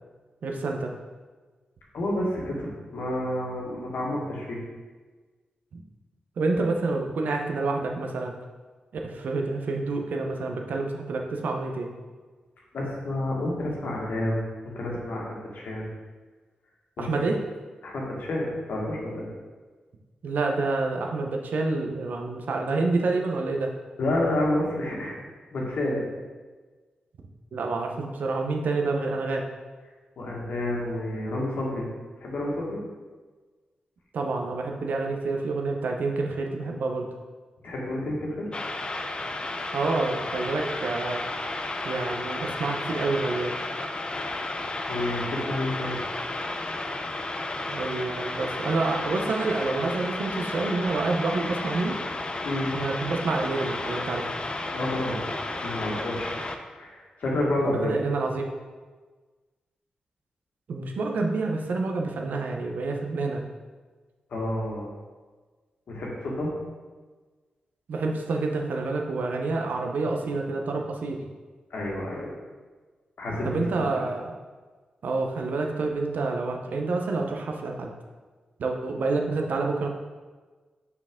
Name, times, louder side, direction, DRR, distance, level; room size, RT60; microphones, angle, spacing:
voice 1, 0.4-0.9 5.7-5.8 6.4-8.4 9.0-11.9 17.0-17.4 20.2-23.7 27.5-29.4 34.1-37.1 39.7-41.2 41.8-43.6 47.7-52.0 52.7-54.3 57.7-58.5 60.7-63.4 67.9-71.3 73.4-74.3 75.0-77.9 78.6-79.9, right 3 dB, 70° right, 2 dB, 0.8 m, -28 dB
voice 2, 1.9-4.6 12.7-14.4 14.7-15.2 15.5-15.9 17.0-17.3 17.8-19.3 24.0-25.1 25.5-26.0 30.2-31.9 32.2-32.8 37.6-38.5 44.8-46.0 52.4-52.7 54.7-55.2 55.6-56.3 56.7-57.9 64.3-64.9 65.9-66.5 71.7-72.3 73.2-73.5, left 1 dB, 75° left, -3 dB, 1.5 m, -29 dB
sound 1, 38.5-56.6, left 2 dB, 35° left, 0.6 m, -32 dB
5.8 x 4.6 x 3.7 m, 1.4 s
supercardioid pair, 45°, 3 cm